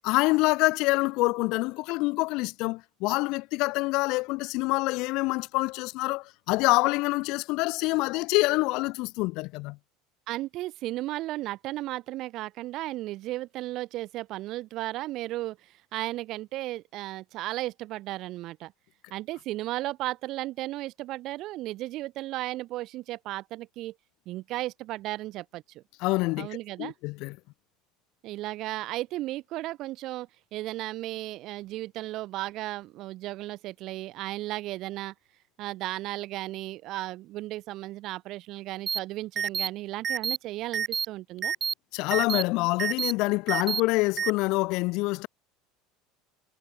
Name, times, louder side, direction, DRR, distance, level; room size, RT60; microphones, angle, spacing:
voice 1, 0.0-9.8 26.0-26.5 26.8-27.4 41.9-45.3, left 23 dB, 60° left, 0.8 m, -26 dB
voice 2, 10.3-18.7 19.1-23.9 24.3-25.8 26.4-26.9 28.2-35.1 35.6-41.5, right 16 dB, 50° right, 4.3 m, -35 dB
sound 1, 38.9-39.0 39.4-39.7 40.0-40.4 40.7-41.0 41.4-41.7 42.1-42.4 42.8-43.1 43.5-43.8 44.2-44.3, right 7 dB, 25° right, 2.2 m, -28 dB
supercardioid pair, 145°, 0 cm